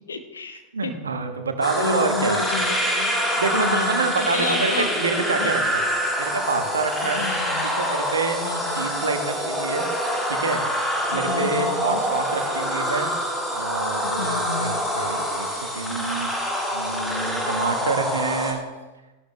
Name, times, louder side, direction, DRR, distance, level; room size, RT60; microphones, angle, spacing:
voice 1, 0.0-0.9 1.7-4.9 5.4-5.5 7.0-7.7 8.4-8.9 11.1-12.0 14.2-14.9, left 4 dB, 70° left, 8 dB, 1.0 m, -31 dB
voice 2, 0.7-2.4 3.4-5.8 6.2-7.2 7.8-8.4 8.7-9.9 10.3-10.6 11.1-13.1 13.5-16.3 16.7-18.6, right 4 dB, 70° right, 6 dB, 1.3 m, -27 dB
sound 1, 1.0-14.8, right 5 dB, 30° right, 2.5 m, -42 dB
sound 2, 1.6-18.5, equal, 5° left, 1.8 m, -26 dB
15.5 x 11.5 x 3.3 m, 1.1 s
figure-of-eight pair, 90°, 0 cm